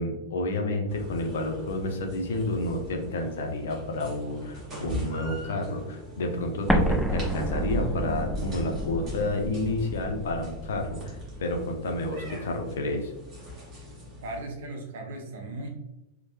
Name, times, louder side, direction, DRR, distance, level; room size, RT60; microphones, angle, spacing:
voice 1, 0.0-13.1, left 2 dB, 60° left, 3 dB, 0.5 m, -30 dB
sound 1, 0.9-14.4, left 1 dB, 25° right, 1.1 m, -42 dB
Explosion, 6.7-11.4, right 1 dB, ahead, 0.3 m, -29 dB
voice 2, 14.2-15.7, right 2 dB, 60° right, 2 dB, 0.6 m, -37 dB
3.0 x 2.1 x 2.9 m, 0.94 s
figure-of-eight pair, 90°, 0 cm